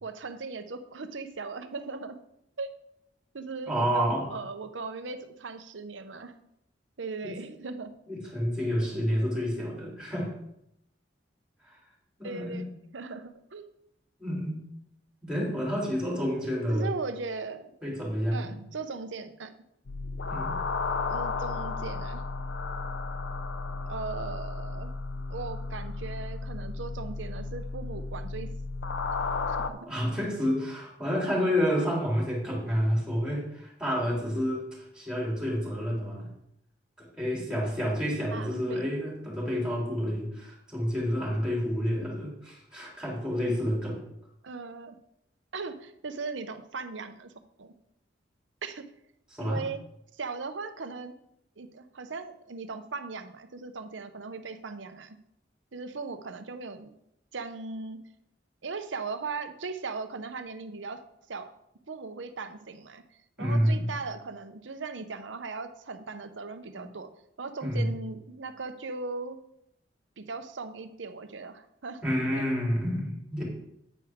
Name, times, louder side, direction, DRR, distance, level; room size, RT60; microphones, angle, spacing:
voice 1, 0.0-2.2 2.6-2.7 3.3-6.4 7.0-7.9 12.2-12.7 12.9-13.6 16.7-17.7 18.3-19.5 21.0-22.2 23.9-24.9 25.3-28.5 29.0-29.9 38.3-38.8 44.4-44.9 45.5-47.3 47.6-47.7 48.6-48.8 49.4-49.8 50.1-51.1 51.6-55.2 55.7-57.0 57.3-58.0 58.6-61.0 61.3-61.5 61.9-63.0 63.4-67.1 67.4-69.4 70.2-72.0 72.4-72.5, right 4 dB, 85° right, 9 dB, 0.8 m, -38 dB
voice 2, 3.7-4.3 7.2-7.3 8.1-10.3 12.2-12.7 14.2-14.6 15.2-16.9 17.8-18.6 20.3-20.6 29.8-36.3 37.0-44.0 49.3-49.6 63.4-63.9 67.6-67.9 72.0-73.4, equal, 5° right, -4 dB, 3.4 m, -29 dB
sound 1, 19.9-29.7, left 3 dB, 80° left, 0.6 m, -33 dB
9.3 x 9.1 x 3.6 m, 0.78 s
head